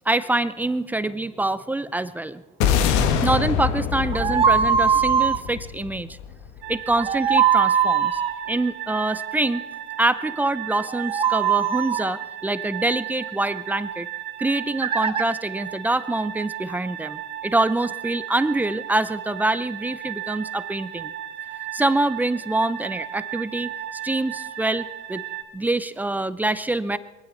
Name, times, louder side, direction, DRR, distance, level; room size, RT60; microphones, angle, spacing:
voice 1, 0.1-2.4 3.2-6.1 6.7-8.2 8.5-9.7 10.0-14.1 14.4-21.1 21.7-25.2 25.5-27.0, right 2 dB, 10° right, 14 dB, 0.6 m, -25 dB
sound 1, 2.6-7.1, left 8 dB, 80° left, 1.6 m, -24 dB
sound 2, 4.1-5.4 6.9-8.3 10.8-12.1 14.8-15.2, right 7 dB, 30° right, 1.2 m, -21 dB
sound 3, 6.6-25.4, right 11 dB, 75° right, 2.1 m, -35 dB
21.0 x 15.5 x 4.1 m, 1.1 s
supercardioid pair, 100°, 17 cm